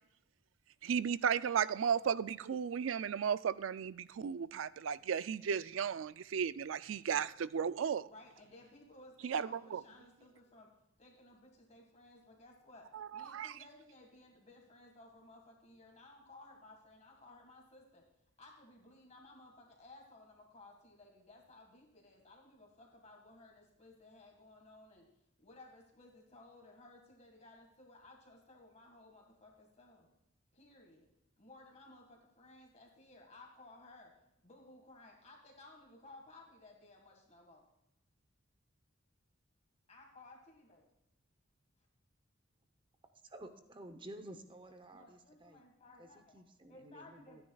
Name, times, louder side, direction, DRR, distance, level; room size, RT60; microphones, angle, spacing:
voice 1, 0.8-8.1 9.2-9.8 12.9-13.5, right 7 dB, 75° right, 0.4 m, -35 dB
voice 2, 8.0-10.7 11.0-18.1 18.4-25.1 25.4-30.1 30.5-31.1 31.4-34.1 34.4-37.6 39.9-40.9 44.9-46.4 46.7-47.4, left 2 dB, 35° left, 1.8 m, -58 dB
voice 3, 43.3-45.6 46.0-47.4, right 1 dB, 25° right, 0.8 m, -52 dB
27.0 x 9.8 x 2.3 m
head